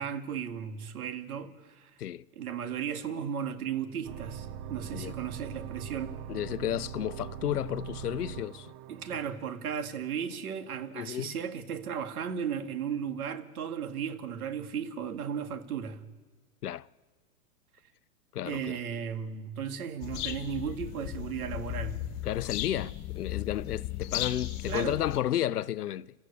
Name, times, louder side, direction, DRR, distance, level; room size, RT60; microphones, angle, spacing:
voice 1, 0.0-1.9 2.3-6.2 8.9-16.0 18.4-22.1 24.7-25.0, right 8 dB, 75° right, 2.1 m, -35 dB
sound 1, 4.0-9.3, right 9 dB, 40° right, 0.8 m, -41 dB
voice 2, 6.3-8.7 10.9-11.3 16.6-16.9 18.3-18.8 22.2-26.1, left 12 dB, 90° left, 0.7 m, -32 dB
sound 2, 20.0-25.2, left 14 dB, 40° left, 1.9 m, -36 dB
29.5 x 13.0 x 8.5 m
hypercardioid pair, 115°, 44 cm